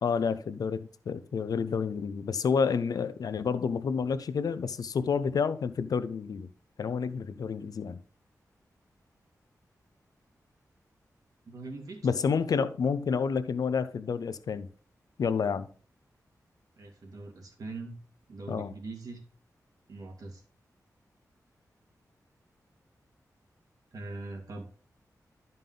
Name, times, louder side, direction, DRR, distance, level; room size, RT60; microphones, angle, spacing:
voice 1, 0.0-6.5 6.8-8.0 12.0-14.7 15.2-15.7 18.5-18.7, left 6 dB, 75° left, 0.6 m, -29 dB
voice 2, 11.5-12.0 16.8-17.9 18.3-19.2 19.9-20.4 23.9-24.7, right 2 dB, 70° right, 2.2 m, -41 dB
11.0 x 5.3 x 3.8 m
wide cardioid pair, 125°, 6 cm